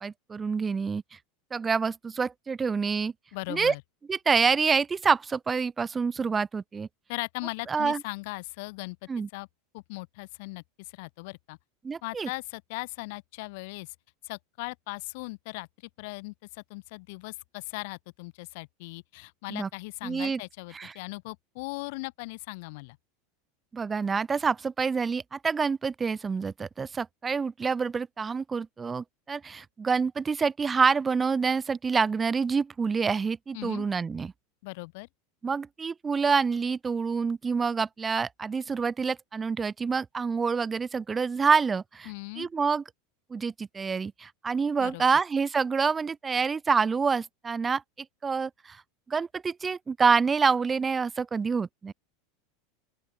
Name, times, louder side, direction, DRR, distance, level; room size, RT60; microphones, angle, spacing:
voice 1, 0.0-1.2 1.5-3.1 3.5-3.7 4.1-6.9 7.7-8.0 9.1-9.3 11.8-12.3 19.5-19.7 20.0-20.4 20.7-20.9 23.7-34.3 35.4-42.8 43.3-48.8 49.1-51.9, right 5 dB, 20° right, 0.4 m, -27 dB
voice 2, 3.3-3.8 7.1-9.0 9.3-9.5 9.7-11.6 12.0-13.9 14.2-15.7 16.0-23.0 33.5-33.9 34.6-35.1 42.0-42.5 44.8-45.0, left 26 dB, 65° left, 1.4 m, -38 dB
open air
supercardioid pair, 120°, 0 cm